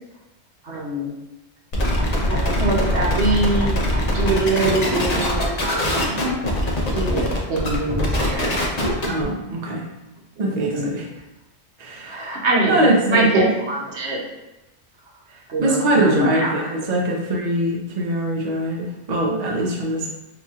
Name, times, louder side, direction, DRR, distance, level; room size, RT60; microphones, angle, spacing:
voice 1, 0.6-1.1 2.3-3.9 4.1-6.1 6.9-8.8 10.5-10.9 12.0-14.2 15.5-16.7, right 2 dB, 70° right, -3 dB, 1.1 m, -23 dB
sound 1, 1.7-9.2, left 1 dB, 45° left, 0.6 m, -22 dB
voice 2, 9.1-9.8 10.4-11.0 11.8-12.4 12.7-13.3 15.6-20.1, right 1 dB, 45° right, -1 dB, 0.6 m, -22 dB
4.1 x 2.9 x 2.4 m, 0.98 s
omnidirectional pair, 1.2 m